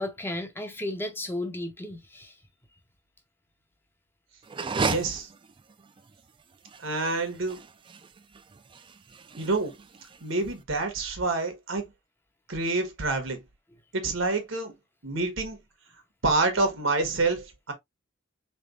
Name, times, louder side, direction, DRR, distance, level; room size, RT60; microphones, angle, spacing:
voice 1, 0.0-2.3, left 1 dB, 10° left, 0.6 m, -34 dB
sound 1, 4.4-10.6, right 4 dB, 25° right, 0.3 m, -35 dB
voice 2, 4.8-5.3 6.8-7.6 9.4-9.8 10.2-11.9 12.5-13.4 13.9-14.7 15.0-15.6 16.2-17.7, right 3 dB, 85° right, 1.2 m, -27 dB
3.8 x 3.3 x 2.4 m
head